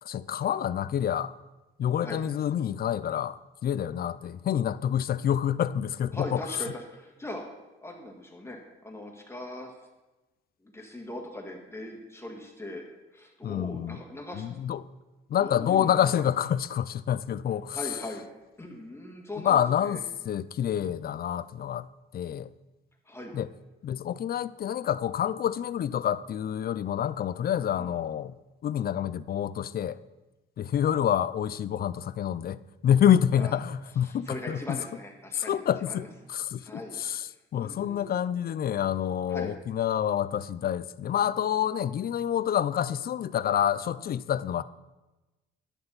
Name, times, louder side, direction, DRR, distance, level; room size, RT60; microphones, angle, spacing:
voice 1, 0.0-1.3 1.8-6.4 13.4-14.0 14.3-14.8 15.3-17.8 19.4-20.0 20.3-21.9 22.1-22.5 23.3-23.5 23.8-28.3 28.6-30.0 30.6-32.6 32.8-34.6 35.3-37.3 37.5-44.6, left 9 dB, 50° left, 0.5 m, -27 dB
voice 2, 6.1-7.4 7.8-9.7 10.6-14.5 15.4-16.2 17.7-18.2 18.6-20.0 23.0-23.4 27.7-27.9 33.3-33.5 34.0-36.1 36.6-37.0 37.6-38.1 39.3-39.5, left 1 dB, 15° left, 1.6 m, -40 dB
11.0 x 9.8 x 4.0 m
cardioid pair, 90°, 20 cm